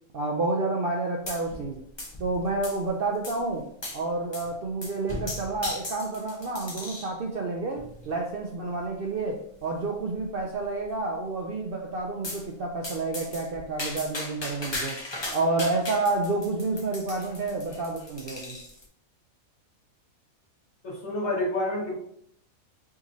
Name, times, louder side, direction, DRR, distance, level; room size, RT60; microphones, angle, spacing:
voice 1, 0.1-1.8 2.2-3.7 3.9-15.0 15.3-18.6, right 3 dB, 65° right, 0 dB, 0.5 m, -29 dB
sound 1, 1.3-1.7 2.0-2.9 3.2-3.4 3.8-4.0 4.3-4.5 4.8-7.2 7.8-8.1 8.8-8.9 9.2-9.3 9.6-9.7 10.1-10.6 12.2-12.4 12.8-18.8, left 2 dB, 25° left, 0.6 m, -37 dB
voice 2, 20.8-21.9, left 1 dB, 55° left, -3 dB, 1.5 m, -28 dB
4.8 x 3.0 x 2.6 m, 0.68 s
omnidirectional pair, 1.5 m